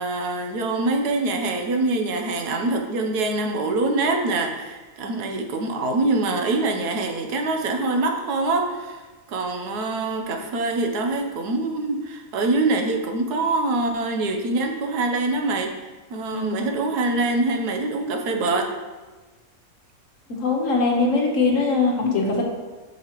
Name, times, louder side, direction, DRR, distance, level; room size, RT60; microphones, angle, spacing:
voice 1, 0.0-9.0 9.3-15.7 16.1-18.7, right 2 dB, 80° right, 4 dB, 1.4 m, -24 dB
voice 2, 20.3-22.4, left 3 dB, 55° left, 1 dB, 1.4 m, -21 dB
8.0 x 5.7 x 3.0 m, 1.3 s
omnidirectional pair, 1.7 m